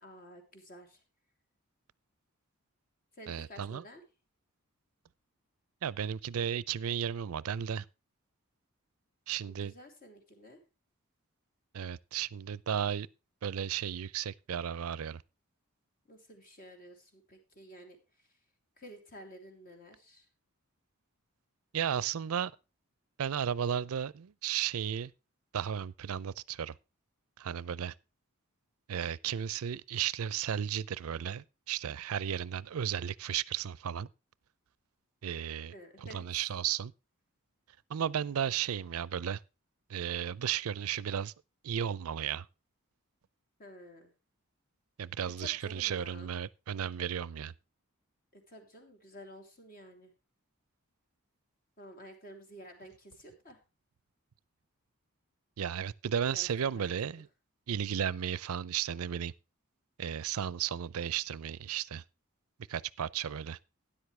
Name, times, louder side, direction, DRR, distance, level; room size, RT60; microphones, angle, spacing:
voice 1, 0.0-1.0 3.1-4.0 9.5-10.6 16.1-18.4 18.8-20.3 35.7-36.2 43.6-44.1 45.4-46.3 48.3-50.1 51.8-53.6 56.3-57.0, equal, 40° left, 2.9 m, -51 dB
voice 2, 3.3-3.8 5.8-7.8 9.3-9.7 11.7-13.1 13.4-15.2 21.7-22.5 23.2-25.1 25.5-26.7 27.4-27.9 28.9-34.1 35.2-35.7 36.0-36.9 37.9-39.4 39.9-41.3 41.6-42.5 45.0-47.5 55.6-57.3 57.7-59.3 60.0-62.0 62.7-63.6, right 8 dB, 80° right, 0.4 m, -34 dB
13.0 x 10.0 x 3.2 m
head